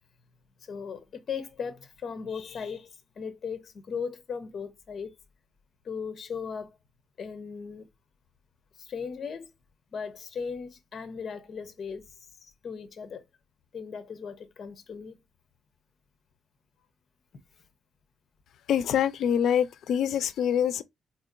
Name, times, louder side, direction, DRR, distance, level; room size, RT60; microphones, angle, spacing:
voice 1, 0.6-5.2 5.8-6.8 7.2-7.9 8.8-9.5 9.9-13.2 13.7-15.2, left 6 dB, 45° left, 0.6 m, -37 dB
voice 2, 18.7-20.8, left 9 dB, 80° left, 0.4 m, -25 dB
4.1 x 2.7 x 2.5 m
wide cardioid pair, 165°, 0 cm